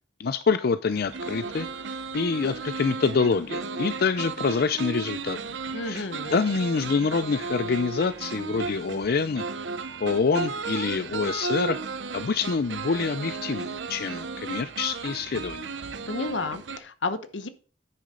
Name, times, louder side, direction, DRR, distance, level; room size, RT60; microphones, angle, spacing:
voice 1, 0.2-5.4 5.8-9.4 10.0-11.8 12.1-15.7, left 5 dB, 55° left, 0.5 m, -26 dB
sound 1, 0.9-16.8, right 4 dB, 90° right, 0.8 m, -34 dB
voice 2, 5.7-6.4 16.1-17.5, left 3 dB, 90° left, 1.0 m, -32 dB
10.0 x 6.2 x 3.8 m
head